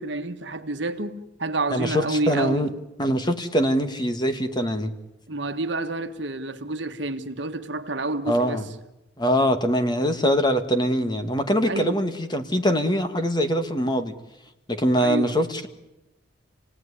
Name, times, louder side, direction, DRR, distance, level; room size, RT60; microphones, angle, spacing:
voice 1, 0.0-2.7 5.3-8.6 11.7-12.0 15.0-15.4, right 2 dB, 65° right, 1.5 m, -29 dB
voice 2, 1.7-2.7 3.0-4.9 8.3-8.6 9.2-14.1 14.7-15.7, equal, 20° left, 1.9 m, -23 dB
28.5 x 18.0 x 9.8 m
head